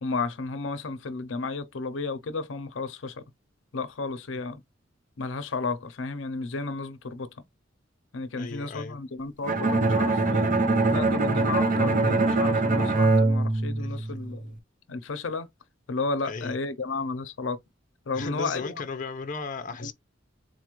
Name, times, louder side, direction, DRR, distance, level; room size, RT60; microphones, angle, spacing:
voice 1, 0.0-3.2 3.7-4.6 5.2-7.4 8.1-10.5 10.9-14.6 14.9-15.5 15.9-17.6 18.1-18.8 19.8-19.9, left 3 dB, 85° left, 0.6 m, -33 dB
voice 2, 8.4-9.0 13.8-13.9 16.3-16.5 18.1-19.9, left 4 dB, 45° left, 0.6 m, -35 dB
Bowed string instrument, 9.5-14.4, right 2 dB, 45° right, 0.6 m, -23 dB
4.0 x 2.4 x 3.0 m
head